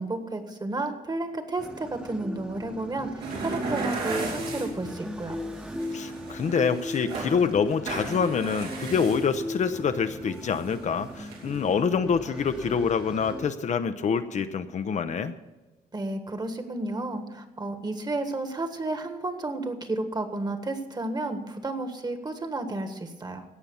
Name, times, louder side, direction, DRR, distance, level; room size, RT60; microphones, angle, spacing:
voice 1, 0.0-5.4 15.9-23.4, right 2 dB, 25° right, 7 dB, 1.5 m, -32 dB
sound 1, 1.6-13.5, left 1 dB, 5° right, 1.1 m, -38 dB
sound 2, 3.2-4.9 5.3-7.4 7.7-9.6 10.3-10.7 11.2-11.7, right 3 dB, 90° right, 3.6 m, -35 dB
voice 2, 5.9-15.3, left 6 dB, 50° left, 9 dB, 0.6 m, -26 dB
17.0 x 5.7 x 6.9 m, 1.2 s
cardioid pair, 100°, 16 cm